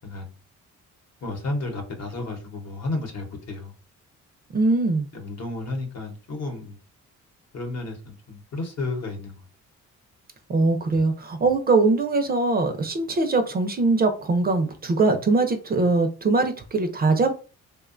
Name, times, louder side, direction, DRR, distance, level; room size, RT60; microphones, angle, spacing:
voice 1, 1.2-3.7 5.1-6.8 7.5-9.4, left 2 dB, 60° left, 0.8 m, -32 dB
voice 2, 4.5-5.1 10.5-17.3, right 3 dB, 30° right, 0.4 m, -22 dB
2.7 x 2.2 x 2.4 m
cardioid pair, 90°, 30 cm